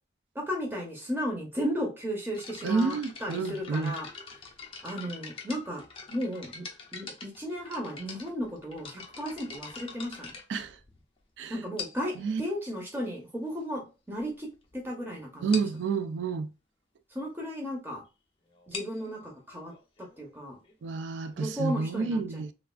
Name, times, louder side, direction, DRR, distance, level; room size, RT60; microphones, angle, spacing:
voice 1, 0.3-4.1 4.8-5.8 6.1-6.6 6.9-10.3 11.5-14.5 14.7-15.6 17.1-18.0 18.7-19.7 20.2-20.6 21.4-22.4, equal, 10° right, 0.7 m, -34 dB
sound 1, 2.3-11.2 11.8-12.2 13.0-13.1 13.7-13.8 14.1-14.3 14.6-14.7 15.0-15.1 15.5-15.8 18.5-22.0, left 5 dB, 30° left, 0.5 m, -44 dB
voice 2, 2.6-3.9 10.5-10.8 11.4-11.6 12.2-12.4 15.4-16.5 20.8-22.5, right 4 dB, 70° right, 0.3 m, -29 dB
3.1 x 2.3 x 2.3 m
head